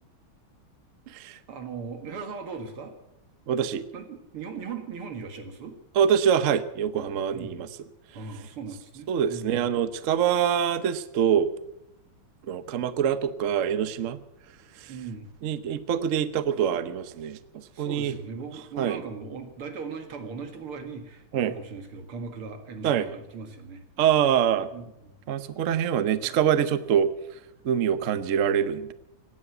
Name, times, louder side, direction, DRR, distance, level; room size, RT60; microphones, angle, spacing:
voice 1, 1.5-2.9 3.9-5.8 7.3-7.6 8.1-9.7 14.9-15.3 17.7-23.8 24.2-24.5 24.7-25.2 26.2-26.3, right 5 dB, 80° right, 7 dB, 2.8 m, -39 dB
voice 2, 3.5-3.8 6.0-7.7 9.1-11.5 12.5-14.2 15.4-17.4 17.8-18.1 18.8-19.0 21.3-21.5 22.8-23.1 24.0-24.7 25.3-27.1 27.6-28.9, right 8 dB, 60° right, 13 dB, 0.8 m, -24 dB
17.0 x 9.9 x 7.9 m, 0.83 s
omnidirectional pair, 2.4 m